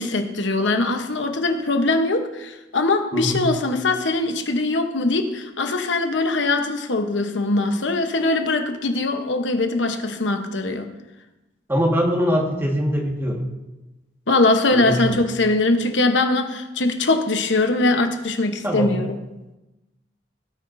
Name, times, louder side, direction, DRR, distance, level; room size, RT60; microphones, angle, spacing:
voice 1, 0.0-10.9 14.3-19.2, left 2 dB, 80° left, 6 dB, 1.0 m, -21 dB
voice 2, 3.1-3.5 11.7-13.4 14.7-15.1 18.6-19.0, equal, 10° right, 0 dB, 1.6 m, -22 dB
17.5 x 9.5 x 2.7 m, 1.0 s
head